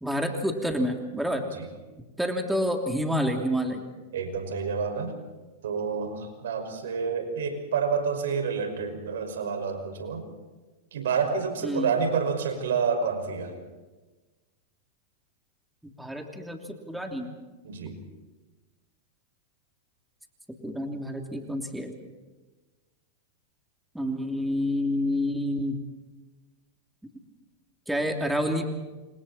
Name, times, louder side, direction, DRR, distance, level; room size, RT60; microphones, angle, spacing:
voice 1, 0.0-1.4 2.2-3.8 11.6-11.9 16.0-17.3 20.6-21.9 23.9-25.8 27.9-28.7, equal, 5° right, 3 dB, 3.0 m, -28 dB
voice 2, 4.1-5.1 5.6-10.3 10.9-13.5 17.6-18.0, right 5 dB, 80° right, 6 dB, 5.8 m, -28 dB
28.5 x 27.5 x 4.4 m, 1.2 s
hypercardioid pair, 125°, 0 cm